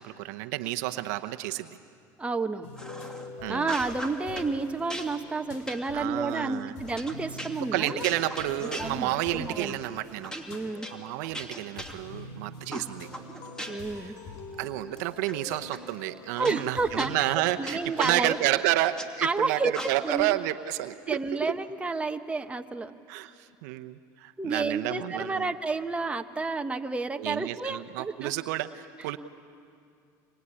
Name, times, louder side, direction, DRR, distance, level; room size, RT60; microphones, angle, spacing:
voice 1, 0.0-1.7 3.4-3.7 5.9-6.7 7.6-10.3 10.9-13.1 14.0-14.1 14.6-21.5 23.1-25.5 27.2-29.2, right 15 dB, 80° right, 9 dB, 0.9 m, -30 dB
voice 2, 2.2-2.7 3.5-8.1 8.8-10.0 10.5-10.9 13.7-14.2 16.4-17.1 17.6-18.4 19.2-19.7 20.0-20.4 21.1-23.0 24.4-28.3, right 3 dB, 15° right, 5 dB, 1.3 m, -30 dB
sound 1, 2.6-17.4, left 3 dB, 80° left, 3.7 m, -45 dB
sound 2, 2.8-3.3 3.6-4.5 4.9-9.4 9.7-9.9 10.2-12.3 12.7-14.0 14.3-15.3 15.7-15.8 16.4-19.1 19.7-20.3, equal, 10° left, 2.6 m, -40 dB
25.0 x 21.5 x 9.8 m, 2.4 s
supercardioid pair, 95°, 9 cm